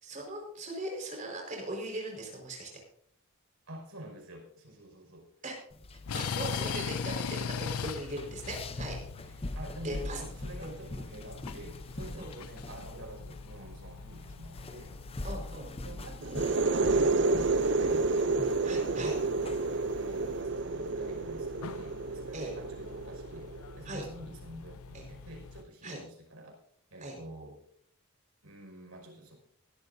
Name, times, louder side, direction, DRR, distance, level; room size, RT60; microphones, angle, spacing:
voice 1, 0.0-2.7 5.4-5.5 6.1-9.4 9.8-10.2 10.6-10.7 12.1-12.3 15.2-15.7 18.6-19.2 22.3-22.5 23.8-24.0 24.9-25.0 25.8-26.0 27.0-27.1, right 1 dB, 35° right, 0 dB, 4.7 m, -39 dB
voice 2, 3.7-5.3 9.6-14.9 15.8-19.1 19.7-26.6 26.9-27.6 28.4-29.3, right 1 dB, 85° right, 1 dB, 5.3 m, -47 dB
sound 1, 5.7-20.4, left 2 dB, 25° left, 0.6 m, -44 dB
sound 2, 6.0-25.6, left 6 dB, 85° left, 0.6 m, -42 dB
sound 3, 16.2-23.8, right 3 dB, 55° right, 0.5 m, -30 dB
20.0 x 12.5 x 2.7 m, 0.67 s
head